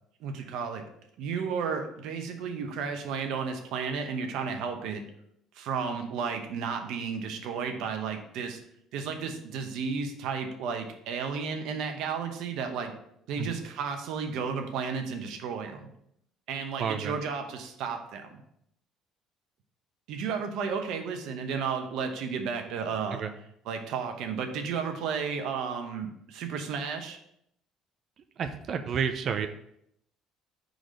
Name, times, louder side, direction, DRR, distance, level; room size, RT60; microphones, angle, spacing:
voice 1, 0.2-0.8 1.2-5.0 5.5-8.6 8.9-12.9 13.3-15.8 16.5-18.4 20.1-23.2 23.6-27.2, right 6 dB, 75° right, 5 dB, 0.9 m, -33 dB
voice 2, 16.8-17.1 23.1-23.3 28.4-29.5, right 7 dB, 50° right, 7 dB, 0.5 m, -30 dB
4.8 x 4.0 x 5.1 m, 0.74 s
supercardioid pair, 95°, 0 cm